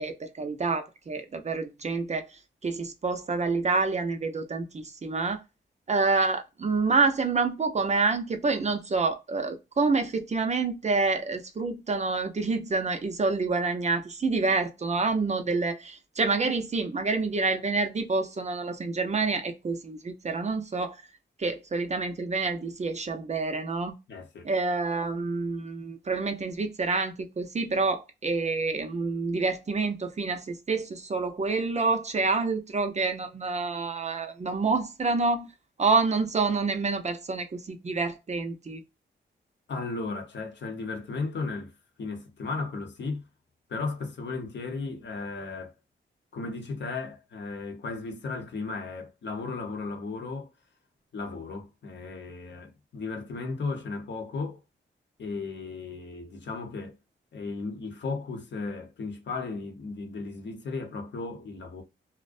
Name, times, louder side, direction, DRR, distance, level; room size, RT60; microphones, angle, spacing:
voice 1, 0.0-5.4 5.9-21.0 21.4-24.0 24.4-35.5 35.8-38.8, right 4 dB, 35° right, 0.5 m, -28 dB
voice 2, 24.1-24.5 39.7-41.7 42.0-43.3 43.7-45.7 46.3-50.5 51.1-54.6 55.2-57.0 57.3-61.8, left 3 dB, 65° left, 0.7 m, -35 dB
2.4 x 2.1 x 2.4 m
cardioid pair, 75°, 20 cm